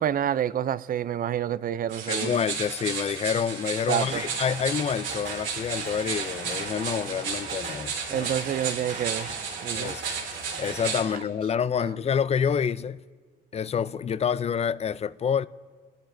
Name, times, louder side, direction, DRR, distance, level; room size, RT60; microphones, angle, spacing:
voice 1, 0.0-2.4 3.9-4.2 8.1-9.3 9.6-9.9, right 10 dB, 45° right, 0.4 m, -28 dB
sound 1, 1.9-11.0, right 5 dB, 85° right, 3.0 m, -33 dB
voice 2, 2.1-8.3 9.3-9.4 9.7-10.0 10.6-13.0 13.5-15.5, left 7 dB, 30° left, 0.4 m, -28 dB
sound 2, 4.0-11.0, right 4 dB, 65° right, 2.5 m, -39 dB
30.0 x 11.5 x 2.6 m
cardioid pair, 90°, 20 cm